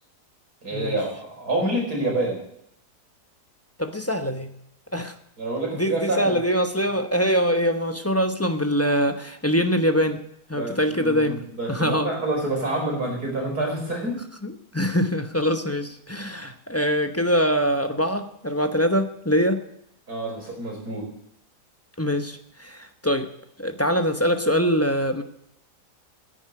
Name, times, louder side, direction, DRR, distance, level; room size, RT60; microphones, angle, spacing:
voice 1, 0.6-2.4 5.4-6.4 10.5-14.2 20.1-21.1, right 1 dB, 60° right, -1 dB, 5.6 m, -27 dB
voice 2, 3.8-4.5 4.9-5.2 5.7-10.2 10.5-11.4 11.7-12.1 14.4-19.6 22.0-23.3 23.6-25.2, equal, 10° left, 7 dB, 0.7 m, -23 dB
10.5 x 10.0 x 9.6 m, 0.74 s
omnidirectional pair, 1.8 m